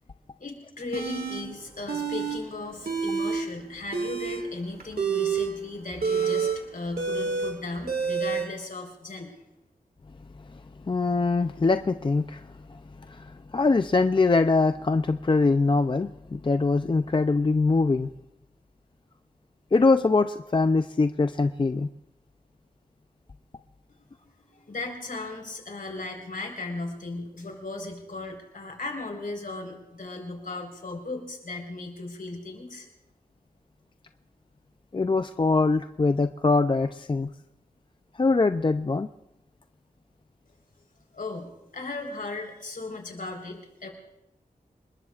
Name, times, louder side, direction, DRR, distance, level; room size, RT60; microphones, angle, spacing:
voice 1, 0.4-9.3 24.2-32.9 41.1-43.9, left 2 dB, 65° left, 2 dB, 4.1 m, -36 dB
sound 1, 0.9-1.4 1.9-2.4 2.7-3.4 3.8-8.4, right 6 dB, 80° right, 2.1 m, -28 dB
voice 2, 10.9-12.8 13.1-18.1 19.7-21.9 34.9-37.3 38.2-39.1, left 3 dB, 35° left, 8 dB, 0.5 m, -23 dB
27.5 x 20.5 x 2.4 m, 0.89 s
wide cardioid pair, 100°, 15 cm